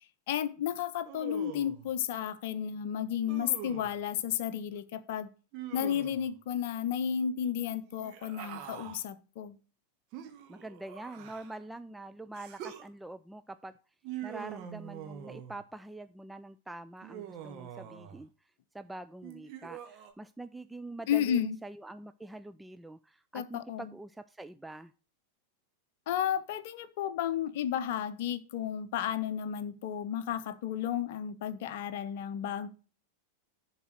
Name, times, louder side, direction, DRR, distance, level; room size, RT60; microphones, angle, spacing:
voice 1, 0.3-5.3 5.7-9.6 21.1-21.6 23.3-23.9 26.1-32.7, left 9 dB, 50° left, 14 dB, 0.7 m, -32 dB
Human voice, 1.0-1.9 3.3-4.0 5.5-6.3 7.9-9.0 10.1-11.6 12.3-12.9 14.0-15.6 17.0-18.2 19.2-20.1, right 10 dB, 40° right, 1.4 m, -44 dB
voice 2, 10.5-13.7 14.2-18.3 18.7-24.9, right 2 dB, 5° right, 11 dB, 0.3 m, -45 dB
11.0 x 4.0 x 6.2 m, 0.36 s
figure-of-eight pair, 90°, 0 cm